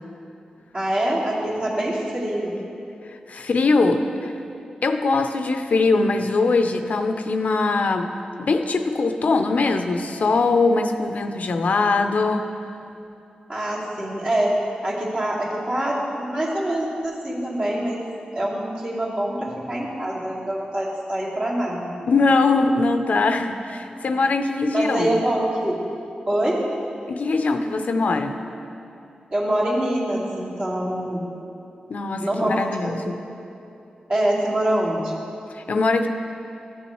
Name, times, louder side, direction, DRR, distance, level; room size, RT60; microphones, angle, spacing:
voice 1, 0.7-2.5 13.5-14.5 14.8-18.0 18.3-22.1 24.0-24.1 24.7-25.8 26.3-26.6 29.3-31.3 32.2-32.5 32.8-33.0 34.1-35.1, right 1 dB, 45° right, -7 dB, 2.3 m, -25 dB
voice 2, 3.3-4.3 4.8-8.1 8.4-12.5 22.1-25.2 27.1-28.4 31.9-33.1 35.5-36.1, left 3 dB, 65° left, 6 dB, 0.5 m, -21 dB
13.5 x 7.1 x 3.1 m, 2.8 s
cardioid pair, 65°, 3 cm